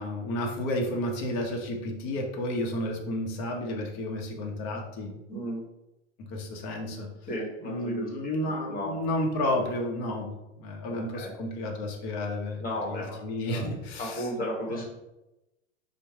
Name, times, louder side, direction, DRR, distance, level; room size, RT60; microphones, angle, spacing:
voice 1, 0.0-5.2 6.2-7.1 7.6-14.2 14.7-14.9, left 1 dB, 40° left, 2 dB, 1.1 m, -32 dB
voice 2, 5.3-5.6 7.3-9.0 10.9-11.3 12.6-13.6 14.0-14.9, equal, 20° left, -2 dB, 1.5 m, -35 dB
4.5 x 2.5 x 4.5 m, 0.95 s
hypercardioid pair, 100°, 39 cm